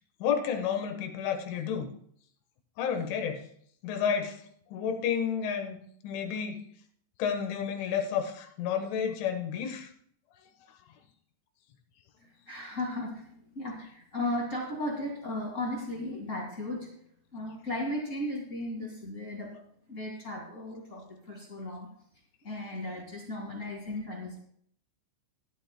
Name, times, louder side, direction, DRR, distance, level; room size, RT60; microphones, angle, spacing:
voice 1, 0.2-1.9 2.8-3.5 3.8-4.4 4.7-5.8 6.0-6.6 7.2-9.9, left 7 dB, 90° left, 6 dB, 3.7 m, -31 dB
voice 2, 12.2-17.0 17.3-19.6 19.9-21.9 22.4-24.4, left 1 dB, 55° left, -2 dB, 0.8 m, -36 dB
17.5 x 12.0 x 2.2 m, 0.65 s
omnidirectional pair, 5.3 m